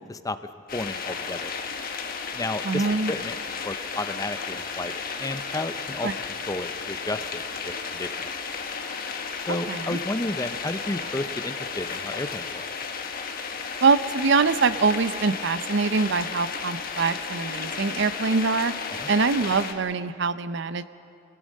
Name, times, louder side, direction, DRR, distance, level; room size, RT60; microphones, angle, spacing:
sound 1, 0.7-19.7, left 5 dB, 50° left, 1.3 m, -33 dB
voice 1, 0.7-1.5 2.3-3.4 3.6-6.1 6.5-8.3 9.5-12.6 19.0-19.1, left 2 dB, 20° left, 11 dB, 0.6 m, -32 dB
voice 2, 2.6-3.1 6.0-6.1 9.7-10.0 13.8-18.7 19.1-20.9, right 4 dB, 65° right, 14 dB, 0.6 m, -24 dB
25.5 x 17.5 x 6.5 m, 2.6 s
head